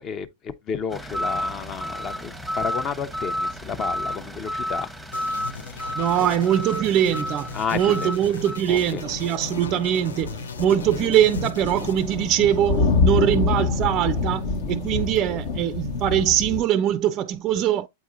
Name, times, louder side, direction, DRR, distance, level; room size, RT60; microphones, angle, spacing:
voice 1, 0.0-4.9 7.5-8.1 8.7-9.0, left 6 dB, 30° left, 0.6 m, -31 dB
sound 1, 0.9-8.6, equal, ahead, 0.8 m, -31 dB
sound 2, 1.1-5.1 5.5-5.6 6.2-6.3 7.1-7.2 7.5-7.6 7.9-8.0 8.2-16.6, left 4 dB, 55° left, 1.0 m, -27 dB
sound 3, 5.1-13.2, left 6 dB, 70° left, 0.5 m, -39 dB
voice 2, 5.9-17.9, right 10 dB, 35° right, 0.4 m, -22 dB
8.1 x 4.6 x 2.5 m
figure-of-eight pair, 95°, 0 cm